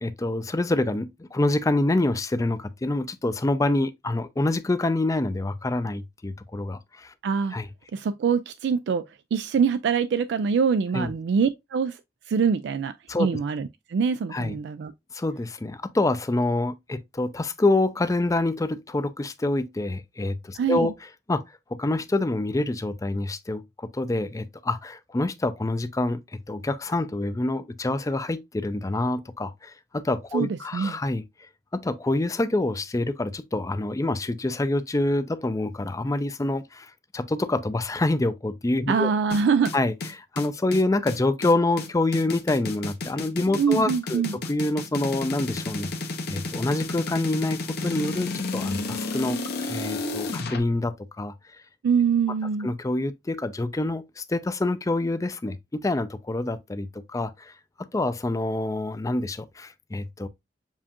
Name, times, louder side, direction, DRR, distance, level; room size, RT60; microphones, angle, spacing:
voice 1, 0.0-7.1 7.5-7.7 10.9-11.1 13.1-13.3 14.3-14.6 15.1-20.9 21.3-21.4 21.7-26.2 26.5-31.2 31.7-39.1 39.7-45.9 46.3-49.4 49.7-51.3 52.6-55.6 55.8-57.5 57.9-60.3, left 2 dB, 20° left, 0.4 m, -26 dB
voice 2, 7.2-7.5 7.9-9.0 9.3-12.0 12.3-12.9 13.2-14.9 20.6-20.9 30.3-31.0 38.9-39.7 43.6-44.4 51.8-52.7, right 6 dB, 75° right, 0.3 m, -24 dB
sound 1, 39.3-50.6, left 3 dB, 65° left, 0.9 m, -32 dB
7.2 x 2.4 x 2.8 m
head